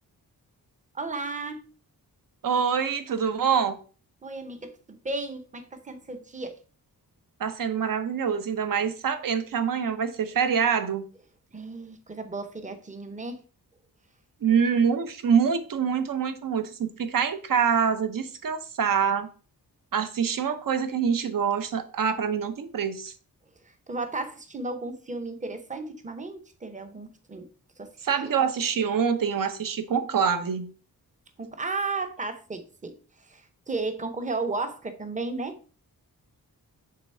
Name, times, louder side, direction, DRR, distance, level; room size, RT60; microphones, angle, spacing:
voice 1, 0.9-1.6 4.2-6.6 11.5-13.4 23.7-27.5 27.8-27.9 28.2-28.3 31.4-35.6, right 3 dB, 20° right, 0.8 m, -34 dB
voice 2, 2.4-3.8 7.4-11.1 14.4-19.3 19.9-23.1 28.0-30.7, right 7 dB, 60° right, 0.9 m, -25 dB
6.6 x 3.4 x 5.5 m
wide cardioid pair, 180°, 37 cm